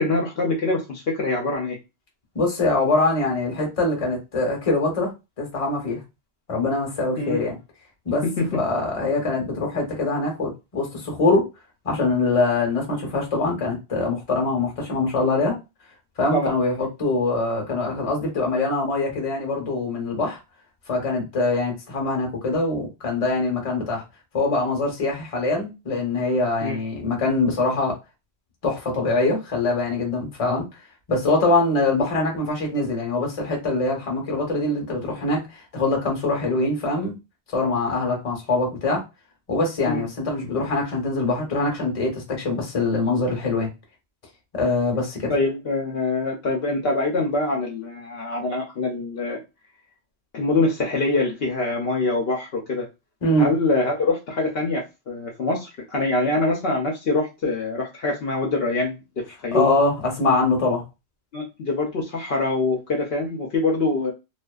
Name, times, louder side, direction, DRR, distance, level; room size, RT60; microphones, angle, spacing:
voice 1, 0.0-1.8 7.2-7.4 8.2-8.5 16.3-16.5 26.6-26.8 39.9-40.0 45.3-49.4 50.3-52.9 53.4-59.7 61.3-64.1, left 2 dB, 65° left, 0.8 m, -24 dB
voice 2, 2.3-5.1 5.4-6.0 6.5-7.6 8.1-11.5 11.8-15.6 16.2-20.4 20.9-24.0 24.3-28.0 28.6-30.7 31.1-37.1 37.5-39.0 39.5-43.7 44.5-45.3 53.2-53.5 59.5-60.8, left 2 dB, 35° left, 0.8 m, -23 dB
2.4 x 2.4 x 2.2 m
omnidirectional pair, 1.1 m